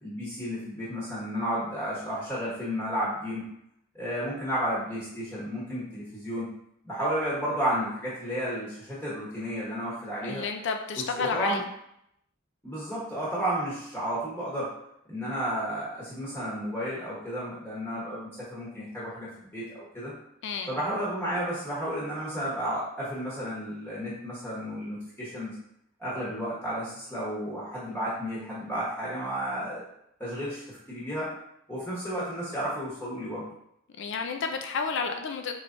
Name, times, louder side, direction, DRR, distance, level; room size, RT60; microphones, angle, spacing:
voice 1, 0.0-3.4 3.9-6.5 6.8-10.4 11.2-11.6 12.6-14.7 15.1-20.1 20.7-25.5 26.0-29.8 30.2-31.3 31.7-33.5, equal, 10° left, -7 dB, 1.0 m, -32 dB
voice 2, 10.2-11.6 20.4-20.8 34.0-35.6, left 5 dB, 60° left, 5 dB, 0.4 m, -31 dB
4.7 x 3.1 x 2.6 m, 0.76 s
head